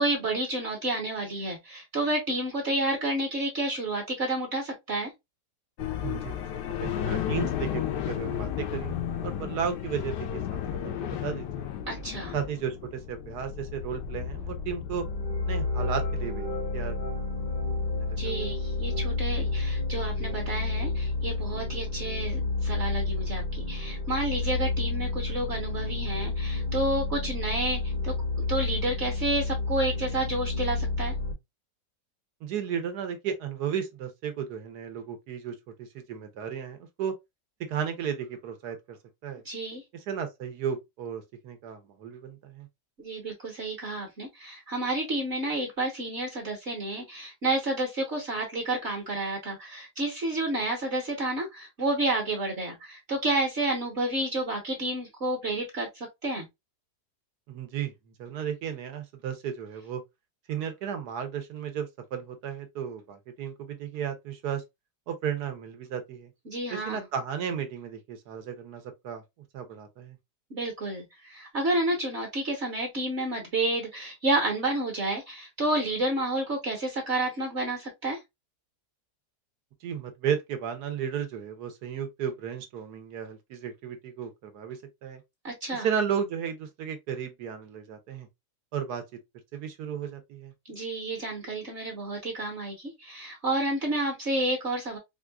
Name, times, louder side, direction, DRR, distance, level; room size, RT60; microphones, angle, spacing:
voice 1, 0.0-5.1 11.9-12.3 18.2-28.1 28.5-31.1 39.4-39.8 43.0-56.5 66.5-67.0 70.5-78.2 85.4-85.9 90.6-95.0, right 2 dB, 45° right, 1.2 m, -30 dB
sound 1, 5.8-18.2, left 10 dB, 85° left, 1.2 m, -34 dB
voice 2, 6.0-6.4 6.8-10.4 10.8-11.7 12.3-15.0 15.5-16.5 16.7-17.0 18.0-18.5 32.4-37.1 37.7-39.0 39.2-39.4 39.9-42.7 57.5-57.9 58.2-60.0 60.5-64.6 65.1-66.3 66.7-69.2 69.5-70.2 79.8-85.2 85.8-88.3 88.7-89.0 89.5-90.5, right 8 dB, 75° right, 1.3 m, -34 dB
sound 2, 14.9-31.3, left 3 dB, 50° left, 0.6 m, -30 dB
4.4 x 2.4 x 2.3 m
omnidirectional pair, 1.8 m